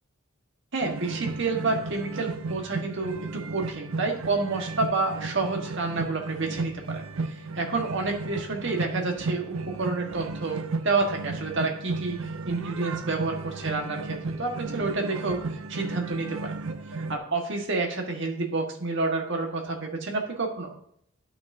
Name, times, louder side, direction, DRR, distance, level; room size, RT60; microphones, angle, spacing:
voice 1, 0.7-16.5 17.1-20.7, right 3 dB, 60° right, 2 dB, 1.6 m, -29 dB
sound 1, 0.8-17.2, right 3 dB, 85° right, 0.6 m, -34 dB
11.5 x 5.9 x 2.8 m, 0.68 s
head